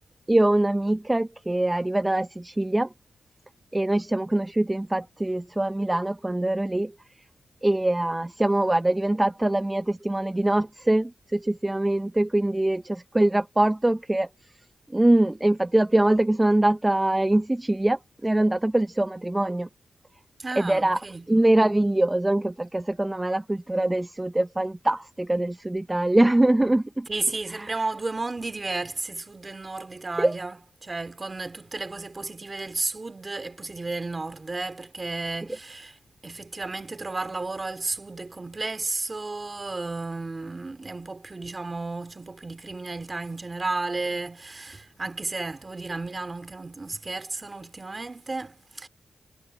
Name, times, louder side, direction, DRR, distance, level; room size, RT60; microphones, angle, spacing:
voice 1, 0.3-2.9 3.7-6.9 7.6-14.3 14.9-19.7 20.6-21.0 21.3-27.1 27.6-27.7 30.2-30.3, right 1 dB, 15° right, 0.6 m, -23 dB
voice 2, 20.4-21.3 27.1-48.9, right 3 dB, 35° right, 2.8 m, -33 dB
cardioid pair, 70°, 0 cm